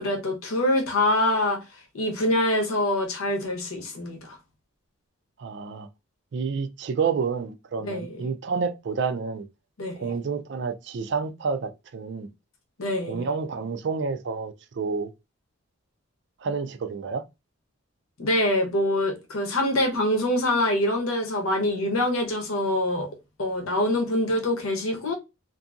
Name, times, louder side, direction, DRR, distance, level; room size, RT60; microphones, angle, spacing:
voice 1, 0.0-1.6 1.9-4.3 7.8-8.3 9.8-10.1 12.8-13.2 18.2-23.1 23.4-25.1, left 1 dB, 80° left, 0.8 m, -25 dB
voice 2, 5.4-5.9 6.3-9.5 9.9-12.3 13.0-15.1 16.4-17.2, right 5 dB, 55° right, 0.3 m, -29 dB
2.6 x 2.6 x 2.3 m
head